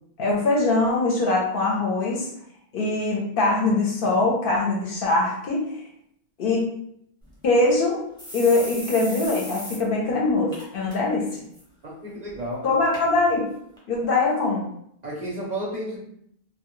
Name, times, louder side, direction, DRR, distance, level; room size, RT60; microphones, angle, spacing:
voice 1, 0.2-2.3 2.7-5.8 6.4-6.7 7.4-8.0 8.3-11.4 12.6-13.4 13.9-14.7, left 2 dB, 65° left, -2 dB, 0.7 m, -22 dB
sound 1, 7.2-7.3 7.7-7.8 8.2-9.8 10.1-10.2 10.5-11.0 11.3-11.6 12.3-12.4 12.9-13.1 13.8-13.9, equal, 5° left, 0.5 m, -37 dB
voice 2, 12.0-12.7 15.0-16.0, right 1 dB, 50° right, -4 dB, 0.6 m, -31 dB
2.1 x 2.1 x 2.9 m, 0.70 s
omnidirectional pair, 1.1 m